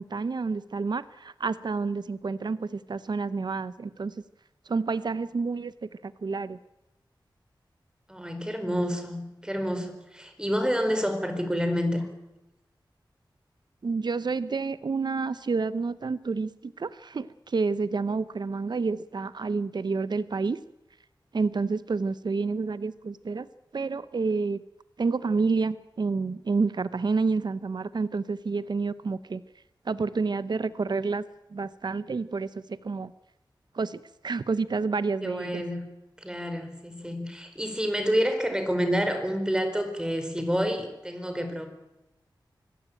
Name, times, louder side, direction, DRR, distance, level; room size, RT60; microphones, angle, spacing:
voice 1, 0.0-4.1 4.7-6.6 13.8-20.6 21.3-23.5 23.7-24.6 25.0-29.4 29.9-31.2 31.5-33.1 33.7-35.6, right 4 dB, 60° right, 15 dB, 0.8 m, -29 dB
voice 2, 8.1-12.1 35.2-35.8 36.2-41.7, equal, 10° right, 7 dB, 4.6 m, -28 dB
25.0 x 16.5 x 9.0 m, 0.94 s
wide cardioid pair, 70°, 8 cm